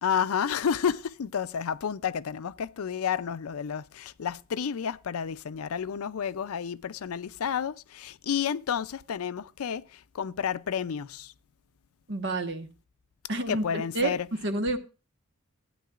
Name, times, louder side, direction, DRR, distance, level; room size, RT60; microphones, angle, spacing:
voice 1, 0.0-11.3 13.5-14.3, left 7 dB, 80° left, 0.4 m, -31 dB
voice 2, 12.1-12.7 13.3-14.2 14.4-14.8, right 2 dB, 55° right, 1.3 m, -29 dB
14.5 x 9.3 x 2.4 m
head